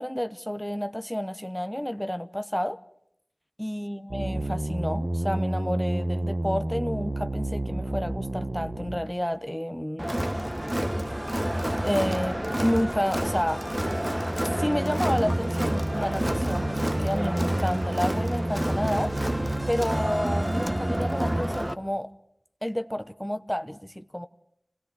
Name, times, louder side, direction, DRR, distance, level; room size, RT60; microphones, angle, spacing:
voice 1, 0.0-2.8 3.6-10.1 11.8-13.6 14.6-19.1 19.7-22.1 22.6-24.3, equal, 5° left, 1.0 m, -30 dB
sound 1, 4.1-9.1 14.3-21.4, right 1 dB, 50° right, 2.1 m, -30 dB
Crowd, 10.0-21.7, equal, 15° right, 1.2 m, -29 dB
28.5 x 17.5 x 8.2 m
wide cardioid pair, 40°, 0 cm